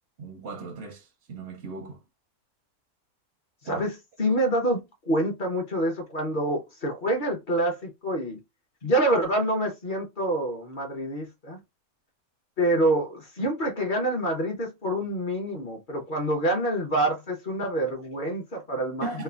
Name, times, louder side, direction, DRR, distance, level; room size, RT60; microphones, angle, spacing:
voice 1, 0.2-2.0 3.6-3.8 19.0-19.2, right 3 dB, 65° right, 0.7 m, -37 dB
voice 2, 4.2-8.4 8.8-11.6 12.6-19.1, right 1 dB, 45° left, 0.7 m, -26 dB
3.1 x 2.1 x 2.3 m
omnidirectional pair, 1.6 m